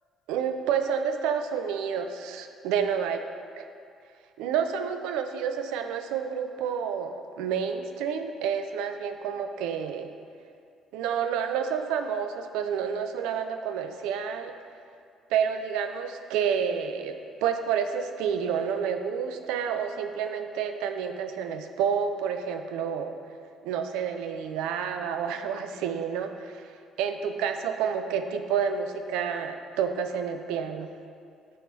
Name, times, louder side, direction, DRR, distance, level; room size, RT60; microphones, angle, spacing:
voice 1, 0.3-3.2 3.6-3.7 4.4-10.1 10.9-14.5 15.3-23.2 23.6-26.6 27.0-30.9, right 7 dB, 65° right, 7 dB, 0.4 m, -29 dB
8.2 x 3.5 x 4.1 m, 2.4 s
figure-of-eight pair, 45°, 0 cm